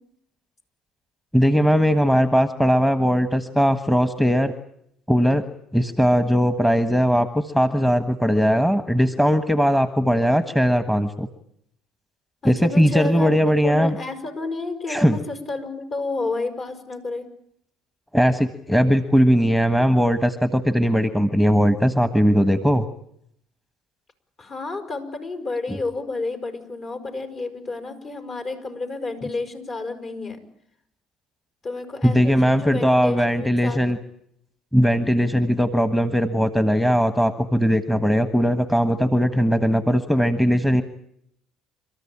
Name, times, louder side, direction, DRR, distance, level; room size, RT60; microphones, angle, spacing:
voice 1, 1.3-4.5 5.1-5.4 5.7-11.3 12.4-13.9 14.9-15.2 18.1-22.9 25.7-25.8 32.0-34.0 34.7-40.8, equal, 5° left, 10 dB, 1.5 m, -19 dB
voice 2, 12.4-13.3 13.6-17.2 24.4-30.4 31.6-33.8, left 3 dB, 45° left, 6 dB, 5.8 m, -30 dB
30.0 x 14.0 x 8.8 m, 0.73 s
hypercardioid pair, 75°, 0 cm